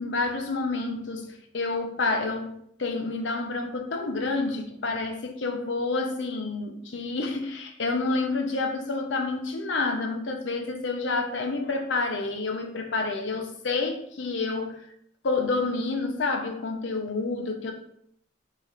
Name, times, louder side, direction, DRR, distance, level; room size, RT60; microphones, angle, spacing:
voice 1, 0.0-14.9 15.2-17.7, left 3 dB, 65° left, 0.6 m, -29 dB
3.1 x 2.4 x 4.2 m
head